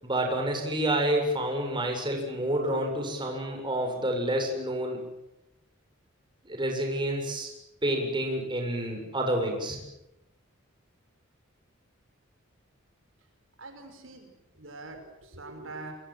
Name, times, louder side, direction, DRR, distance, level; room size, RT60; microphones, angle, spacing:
voice 1, 0.0-5.0 6.5-7.5 7.8-9.8, right 1 dB, 25° right, 2 dB, 7.3 m, -28 dB
voice 2, 13.6-14.3 14.6-15.9, right 2 dB, 65° right, 5 dB, 5.6 m, -43 dB
28.0 x 25.0 x 7.8 m, 0.90 s
head